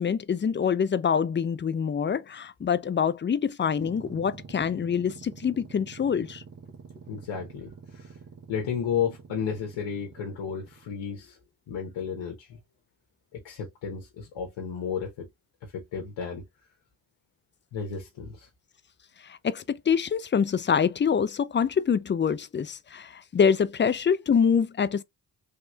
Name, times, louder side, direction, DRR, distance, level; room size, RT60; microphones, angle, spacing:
voice 1, 0.0-6.4 19.2-25.0, left 7 dB, 25° left, 0.4 m, -25 dB
sound 1, 3.7-11.0, right 5 dB, 35° right, 0.8 m, -47 dB
voice 2, 7.1-8.2 8.5-11.4 11.7-12.6 13.3-15.3 15.6-16.4 17.7-18.5, left 7 dB, 80° left, 1.0 m, -33 dB
3.3 x 2.9 x 2.2 m
supercardioid pair, 50°, 44 cm